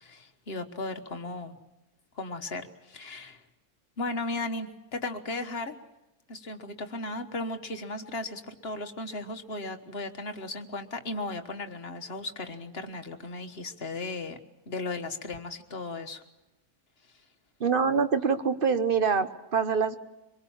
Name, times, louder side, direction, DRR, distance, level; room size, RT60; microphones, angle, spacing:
voice 1, 0.0-1.6 2.1-3.4 4.0-5.8 6.3-14.4 14.7-16.2, left 2 dB, 45° left, 7 dB, 1.5 m, -36 dB
voice 2, 17.6-20.0, right 5 dB, 40° right, 10 dB, 1.1 m, -25 dB
24.5 x 22.0 x 7.2 m, 0.96 s
omnidirectional pair, 1.6 m